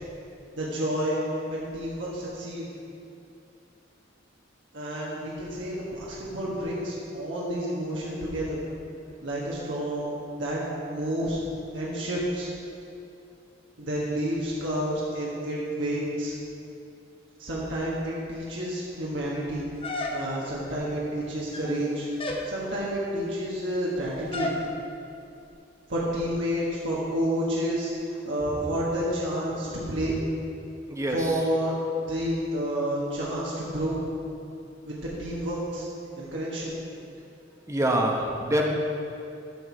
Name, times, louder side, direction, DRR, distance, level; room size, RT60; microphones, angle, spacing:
voice 1, 0.6-1.2 1.5-2.7 4.7-8.6 9.2-11.4 11.7-12.5 13.8-16.3 17.4-19.6 20.1-22.1 22.5-24.5 25.9-30.2 31.1-34.0 34.8-35.8 36.1-36.8, equal, 70° right, -6 dB, 1.5 m, -30 dB
sound 1, 19.8-20.6 21.4-21.8 22.2-22.5 24.3-24.7, left 1 dB, 30° left, 0.7 m, -32 dB
voice 2, 30.9-31.4 37.7-38.6, right 1 dB, 15° right, 0 dB, 0.9 m, -26 dB
13.0 x 4.6 x 4.6 m, 2.7 s
head